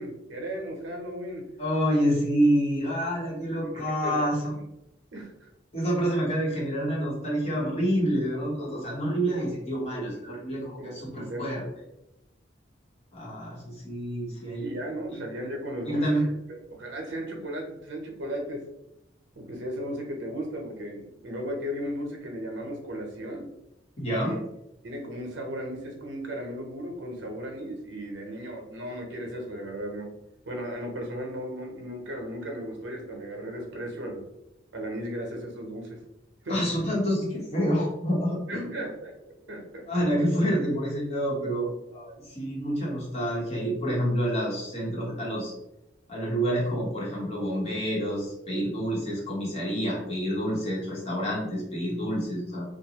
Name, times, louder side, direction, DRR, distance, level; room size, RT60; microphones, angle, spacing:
voice 1, 0.0-1.5 3.7-4.6 5.1-5.5 10.8-11.5 14.5-18.6 19.3-23.5 24.2-24.3 24.8-30.1 30.5-34.2 34.7-36.0 36.4-36.6 38.5-39.1 39.5-39.8, equal, 75° right, 1 dB, 0.7 m, -36 dB
voice 2, 1.6-4.5 5.7-11.7 13.1-14.7 15.1-15.2 15.9-16.2 24.0-24.4 36.5-38.8 39.9-45.5 46.1-52.6, equal, 35° left, -5 dB, 1.0 m, -28 dB
2.5 x 2.2 x 2.8 m, 0.87 s
head